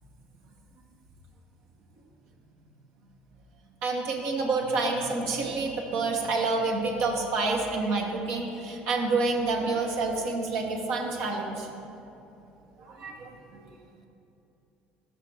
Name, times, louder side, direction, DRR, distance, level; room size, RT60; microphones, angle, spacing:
voice 1, 3.8-11.7 12.8-13.6, right 3 dB, 65° right, 0 dB, 1.1 m, -28 dB
14.0 x 5.0 x 3.4 m, 2.8 s
hypercardioid pair, 60°, 5 cm